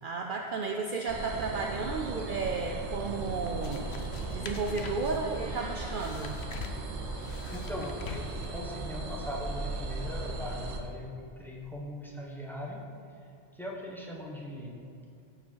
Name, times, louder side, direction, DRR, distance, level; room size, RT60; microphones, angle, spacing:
voice 1, 0.0-3.9 4.3-6.4, right 4 dB, 60° right, 2 dB, 0.7 m, -33 dB
sound 1, 1.1-10.8, right 2 dB, 90° right, 1.2 m, -37 dB
sound 2, 3.1-8.6, left 4 dB, 75° left, 1.0 m, -45 dB
Meow, 5.2-6.1, right 1 dB, 20° left, 1.5 m, -48 dB
voice 2, 7.2-12.8 13.2-13.3 13.5-14.8, left 1 dB, ahead, -2 dB, 1.2 m, -40 dB
14.0 x 5.0 x 4.6 m, 2.5 s
omnidirectional pair, 1.1 m